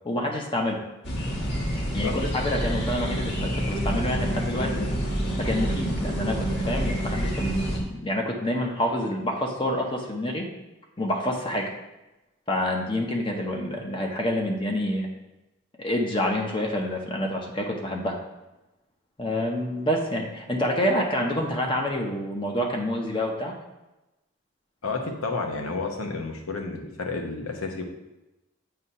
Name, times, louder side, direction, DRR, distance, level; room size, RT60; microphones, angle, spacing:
voice 1, 0.1-0.8 1.9-4.9 5.4-10.5 11.0-11.7 12.5-15.1 15.8-18.2 19.2-23.5, left 1 dB, 25° left, 1 dB, 0.7 m, -27 dB
sound 1, 1.0-7.8, equal, 50° left, 1.3 m, -28 dB
voice 2, 24.8-27.8, left 3 dB, 85° left, 2 dB, 0.9 m, -31 dB
7.7 x 2.8 x 5.4 m, 1.0 s
head